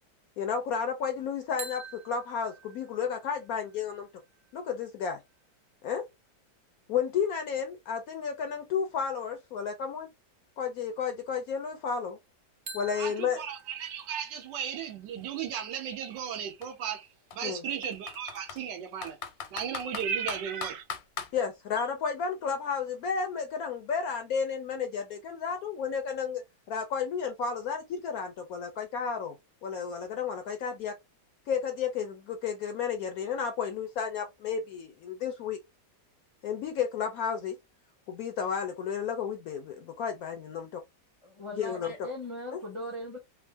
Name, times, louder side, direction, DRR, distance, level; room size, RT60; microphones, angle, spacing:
voice 1, 0.4-4.1 4.5-5.2 5.8-6.1 6.9-10.1 10.6-12.2 12.7-13.4 17.4-17.6 21.3-26.4 26.7-29.3 29.6-31.0 31.5-35.6 36.4-37.6 38.1-40.8 41.5-42.1 42.5-42.6, left 6 dB, 70° left, 0.8 m, -32 dB
sound 1, 1.6-5.4 12.7-16.5, right 3 dB, 60° right, 0.7 m, -49 dB
Computer keyboard, 13.0-13.1 13.4-15.4 16.2-16.3 16.6-16.7 17.3-18.6 19.0-21.3, left 7 dB, 90° left, 1.4 m, -40 dB
voice 2, 13.0-17.1 17.3-19.2 19.5-20.8, right 8 dB, 80° right, 1.4 m, -35 dB
voice 3, 41.2-43.2, left 1 dB, 35° left, 0.5 m, -39 dB
3.5 x 2.0 x 3.3 m
omnidirectional pair, 1.9 m